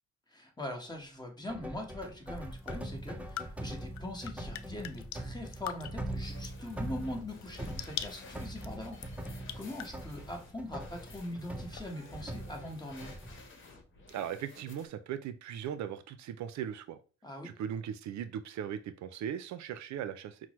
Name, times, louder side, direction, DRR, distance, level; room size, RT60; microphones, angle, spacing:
voice 1, 0.3-13.1 17.2-17.6, left 1 dB, 15° left, 3 dB, 1.1 m, -42 dB
sound 1, 1.5-13.5, right 1 dB, 5° right, 0.5 m, -42 dB
sound 2, 2.3-13.5, left 11 dB, 65° left, 0.4 m, -47 dB
sound 3, 6.2-14.9, left 3 dB, 40° left, 1.1 m, -54 dB
voice 2, 14.1-17.0 17.4-20.4, right 9 dB, 65° right, 12 dB, 0.4 m, -38 dB
5.8 x 2.1 x 3.0 m, 0.36 s
cardioid pair, 90°, 30 cm